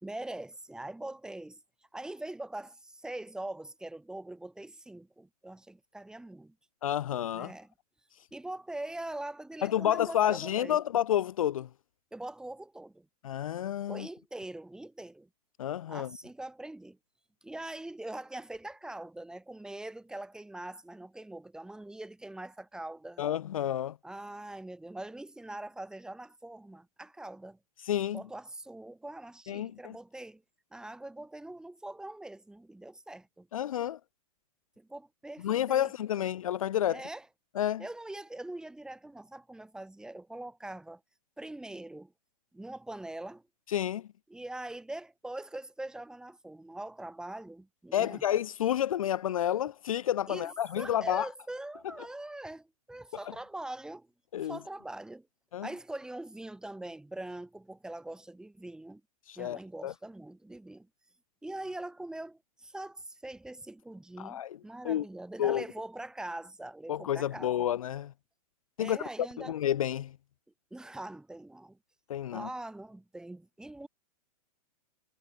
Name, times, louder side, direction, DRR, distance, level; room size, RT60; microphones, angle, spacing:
voice 1, 0.0-1.6 1.9-6.6 7.3-7.7 8.3-10.8 12.1-13.1 13.9-15.3 15.9-17.0 17.4-23.2 24.0-27.6 28.1-30.4 30.7-33.5 34.8-35.9 36.2-36.3 36.9-37.3 37.8-41.0 41.4-42.1 42.5-43.4 44.3-48.2 50.3-54.1 54.4-55.3 55.6-59.0 59.4-60.9 61.4-67.7 68.8-69.5 70.7-71.8 72.3-73.9, right 1 dB, 5° right, 1.8 m, -43 dB
voice 2, 6.8-7.5 9.6-11.7 13.2-14.1 15.6-16.1 23.2-24.0 27.8-28.2 29.5-30.0 33.5-34.0 35.4-37.0 37.6-37.8 43.7-44.1 47.9-51.3 54.3-54.6 55.5-55.7 59.3-59.9 64.2-64.6 64.8-65.0 65.4-65.6 66.9-68.1 68.8-69.0 69.4-70.1 72.1-72.5, left 11 dB, 60° left, 0.5 m, -30 dB
figure-of-eight pair, 110°, 20 cm